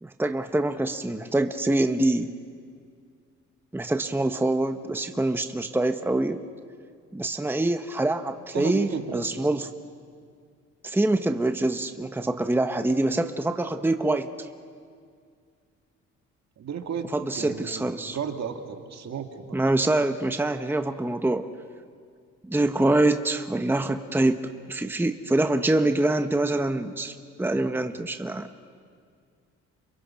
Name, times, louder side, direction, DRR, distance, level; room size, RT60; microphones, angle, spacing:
voice 1, 0.0-2.3 3.7-6.4 7.1-9.7 10.8-14.5 17.1-18.2 19.5-21.5 22.4-24.4 24.7-28.5, right 2 dB, 5° right, 7 dB, 1.0 m, -25 dB
voice 2, 8.5-9.5 16.6-19.6, right 7 dB, 60° right, 5 dB, 2.3 m, -34 dB
29.5 x 27.0 x 5.8 m, 2.1 s
cardioid pair, 90°, 30 cm